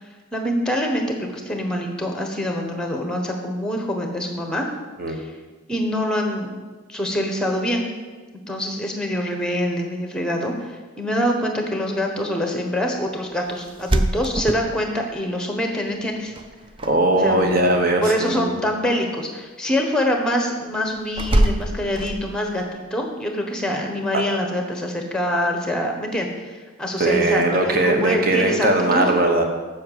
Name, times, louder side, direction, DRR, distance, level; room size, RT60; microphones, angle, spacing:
voice 1, 0.0-4.7 5.1-5.3 5.7-6.6 6.9-7.9 8.5-16.3 17.2-17.5 18.0-29.1, equal, 5° left, 3 dB, 1.1 m, -25 dB
sound 1, 13.7-15.2 16.4-16.9 17.2-17.7 21.2-22.5, right 1 dB, 25° right, 0.4 m, -23 dB
voice 2, 16.8-18.5 24.1-24.2 27.0-29.4, right 2 dB, 45° right, 3 dB, 1.2 m, -19 dB
7.7 x 6.3 x 7.4 m, 1.3 s
head